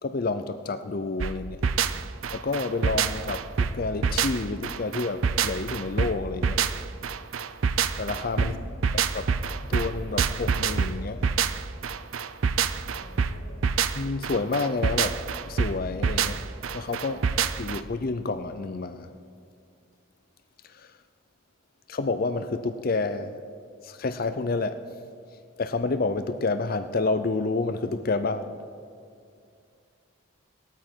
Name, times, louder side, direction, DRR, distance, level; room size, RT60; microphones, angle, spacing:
voice 1, 0.0-1.6 2.3-6.7 8.0-8.5 8.9-9.3 9.7-11.3 13.9-15.2 15.5-16.5 16.7-17.3 17.6-19.1 20.7-20.9 21.9-23.4 23.8-24.8 25.6-28.6, left 3 dB, 45° left, 0.5 m, -29 dB
sound 1, 1.2-17.8, right 6 dB, 75° right, 0.5 m, -26 dB
voice 2, 8.4-8.8 12.6-13.7, left 2 dB, 80° left, 1.7 m, -48 dB
18.5 x 13.0 x 4.5 m
head